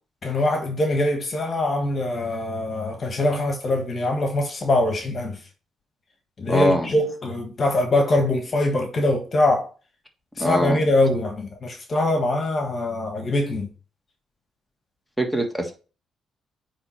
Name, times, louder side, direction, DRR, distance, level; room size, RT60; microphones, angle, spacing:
voice 1, 0.2-5.4 6.4-9.7 10.4-13.7, left 1 dB, 40° left, 1.3 m, -23 dB
voice 2, 6.5-6.9 10.4-10.8 15.2-15.7, equal, 5° right, 1.6 m, -22 dB
9.3 x 3.2 x 4.4 m
cardioid pair, 90°, 0 cm